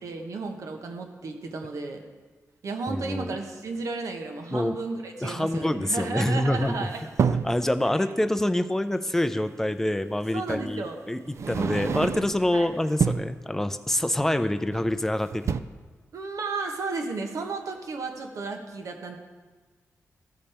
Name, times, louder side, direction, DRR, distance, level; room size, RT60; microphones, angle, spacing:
voice 1, 0.0-2.0 2.6-7.0 10.3-11.0 11.6-11.9 12.5-12.7 16.1-19.2, right 3 dB, 80° right, 4 dB, 1.1 m, -33 dB
voice 2, 2.9-3.4 4.5-4.8 5.2-6.9 7.3-15.7, left 1 dB, 5° left, 10 dB, 0.4 m, -26 dB
sound 1, 6.6-7.6 9.3-9.4 10.5-10.7 11.3-12.5 12.9-13.4 14.7-15.1 15.3-15.6, right 6 dB, 60° right, 0.3 m, -28 dB
14.5 x 5.2 x 4.3 m, 1.4 s
wide cardioid pair, 120°, 6 cm